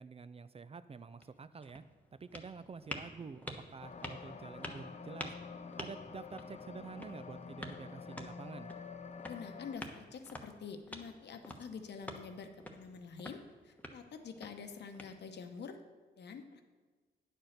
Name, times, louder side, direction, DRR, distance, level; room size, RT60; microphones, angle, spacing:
voice 1, 0.0-1.8 2.2-5.3 5.8-8.7, right 5 dB, 35° right, 13 dB, 0.4 m, -48 dB
sound 1, 1.2-15.6, left 1 dB, 10° left, 1.0 m, -50 dB
sound 2, 3.8-9.8, left 5 dB, 40° left, 0.6 m, -48 dB
voice 2, 9.2-15.8 16.2-16.6, left 5 dB, 70° left, 7 dB, 0.9 m, -47 dB
9.2 x 4.4 x 6.5 m, 1.4 s
cardioid pair, 60°, 18 cm